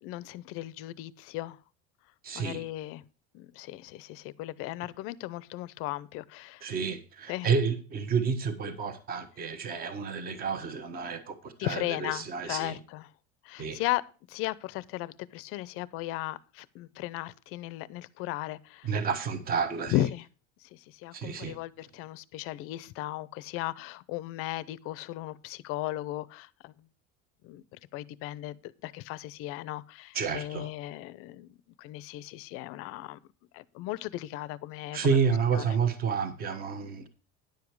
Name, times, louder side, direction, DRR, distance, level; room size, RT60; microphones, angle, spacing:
voice 1, 0.0-1.6 2.3-3.0 3.3-6.7 7.3-7.5 11.6-13.1 13.4-14.0 14.3-18.9 19.9-20.3 20.6-26.7 27.4-31.5 31.8-33.2 33.5-35.2 35.5-35.7, left 16 dB, 50° left, 0.6 m, -36 dB
voice 2, 2.2-2.6 6.6-12.8 13.6-13.8 18.8-20.1 21.1-21.6 30.1-30.7 34.9-37.1, right 6 dB, 30° right, 1.3 m, -30 dB
10.5 x 7.2 x 4.7 m
cardioid pair, 175°, 29 cm